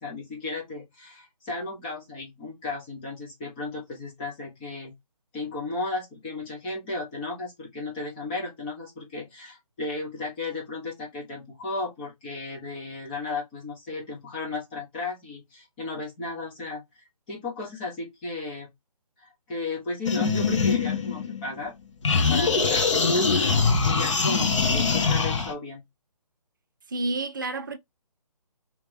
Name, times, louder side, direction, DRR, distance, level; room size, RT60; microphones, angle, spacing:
voice 1, 0.0-4.9 5.3-16.8 17.3-18.7 19.2-21.7 22.3-25.8, left 3 dB, 15° left, 0.7 m, -34 dB
sound 1, 20.0-21.7 22.0-25.5, left 4 dB, 50° left, 1.0 m, -23 dB
voice 2, 26.9-27.8, right 2 dB, 30° right, 0.4 m, -29 dB
3.2 x 2.9 x 3.4 m
figure-of-eight pair, 155°, 20 cm